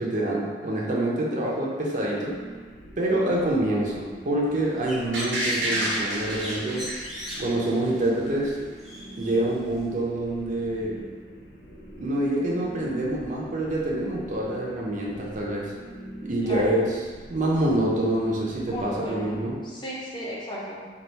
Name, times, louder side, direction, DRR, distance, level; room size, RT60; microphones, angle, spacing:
voice 1, 0.0-2.4 3.0-6.9 7.4-8.6 9.2-11.0 12.0-15.7 16.2-16.8 17.3-19.6, right 1 dB, 45° right, -3 dB, 0.6 m, -26 dB
sound 1, 2.2-19.6, right 1 dB, 60° left, 0.8 m, -44 dB
Bird, 4.4-9.9, equal, ahead, 0.5 m, -41 dB
sound 2, 5.1-8.1 8.4-8.5, right 1 dB, 90° right, 1.1 m, -29 dB
voice 2, 16.4-16.8 18.7-19.3 19.6-20.9, equal, 25° left, -6 dB, 0.8 m, -34 dB
3.3 x 2.5 x 4.1 m, 1.5 s
head